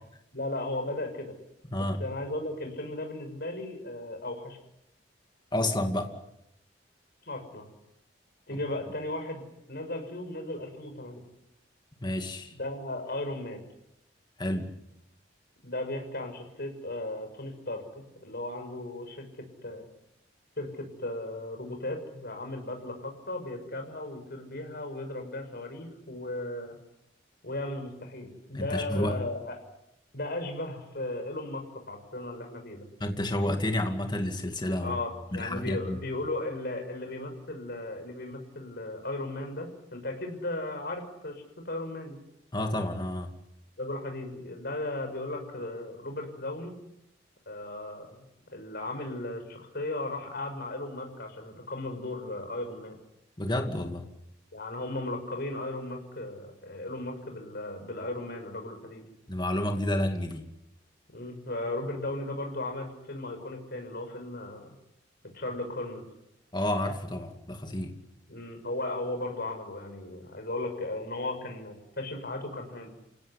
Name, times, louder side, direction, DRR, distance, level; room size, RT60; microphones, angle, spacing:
voice 1, 0.3-1.3 1.7-4.6 7.2-7.7 8.5-9.4 9.7-11.2 12.5-13.6 15.6-19.8 20.6-26.8 27.4-29.6 30.1-32.9 34.8-42.2 43.8-46.7 47.5-48.2 48.5-53.0 54.5-59.0 61.1-64.8 65.3-66.0 68.3-72.9, left 2 dB, 60° left, 5 dB, 6.4 m, -36 dB
voice 2, 1.7-2.0 5.5-6.1 8.5-8.6 12.0-12.5 14.4-14.7 28.5-29.2 33.0-35.0 35.3-36.0 42.5-43.3 53.4-54.1 59.3-60.4 66.5-67.9, left 1 dB, 25° left, 5 dB, 2.3 m, -30 dB
28.5 x 17.5 x 9.8 m, 0.84 s
head